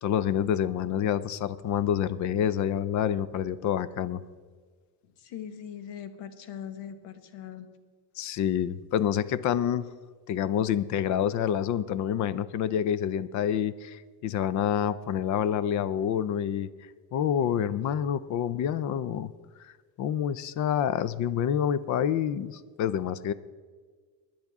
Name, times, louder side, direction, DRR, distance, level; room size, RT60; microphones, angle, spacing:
voice 1, 0.0-4.2 8.2-9.9 10.3-16.7 17.1-19.3 20.0-23.3, left 9 dB, 45° left, 17 dB, 0.4 m, -27 dB
voice 2, 5.2-7.7, left 9 dB, 80° left, 9 dB, 1.4 m, -41 dB
20.0 x 10.0 x 3.6 m, 1.5 s
cardioid pair, 175°, 44 cm